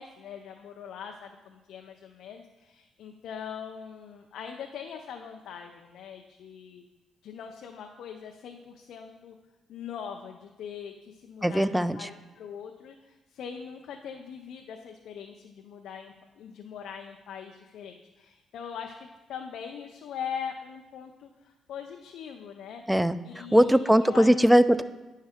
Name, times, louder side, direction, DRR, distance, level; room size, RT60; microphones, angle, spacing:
voice 1, 0.0-6.8 7.2-9.4 9.7-22.8 23.2-24.3, left 7 dB, 75° left, 3 dB, 0.5 m, -41 dB
voice 2, 11.4-12.1 22.9-23.2 23.5-24.8, equal, 5° right, 14 dB, 0.3 m, -20 dB
9.6 x 5.5 x 3.5 m, 1.1 s
cardioid pair, 90°, 0 cm